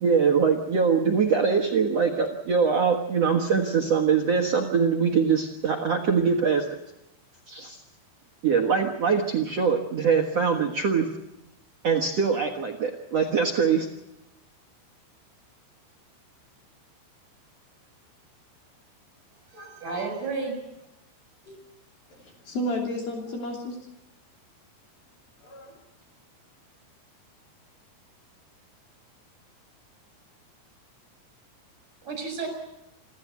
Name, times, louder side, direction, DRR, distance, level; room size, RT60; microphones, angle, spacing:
voice 1, 0.0-6.7 7.5-7.8 8.4-11.1 11.8-13.9, right 6 dB, 75° right, 1 dB, 1.4 m, -23 dB
voice 2, 19.5-20.6 21.4-21.6 32.0-32.5, right 4 dB, 40° right, 5 dB, 8.0 m, -32 dB
voice 3, 22.1-23.8 25.4-25.8, left 1 dB, 55° left, 0 dB, 4.6 m, -32 dB
28.0 x 12.5 x 8.4 m, 0.87 s
omnidirectional pair, 5.4 m